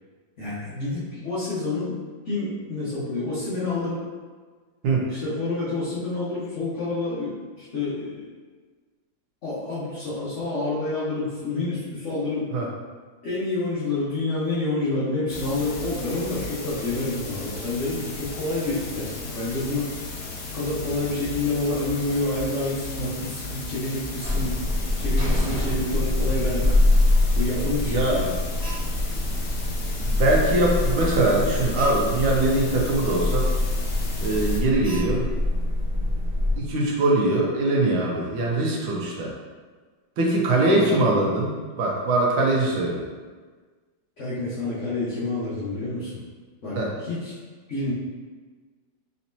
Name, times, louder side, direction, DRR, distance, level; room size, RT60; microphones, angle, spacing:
voice 1, 0.4-1.9 2.2-4.0 5.1-8.3 9.4-12.5 13.2-19.9 20.5-24.6 25.0-26.7 27.3-28.4 40.7-41.2 44.2-46.2 46.6-47.4 47.7-47.9, left 2 dB, 45° left, -11 dB, 1.2 m, -28 dB
sound 1, 15.3-34.6, left 2 dB, 65° left, 0.7 m, -35 dB
Alarm, 24.2-36.6, left 2 dB, 20° right, 1.4 m, -24 dB
voice 2, 27.8-28.2 29.1-29.3 30.0-33.5 34.2-35.3 36.6-39.3 40.2-41.5 41.8-43.0 46.7-46.9, right 2 dB, 85° right, -2 dB, 1.7 m, -22 dB
4.1 x 4.1 x 2.7 m, 1.5 s
omnidirectional pair, 2.2 m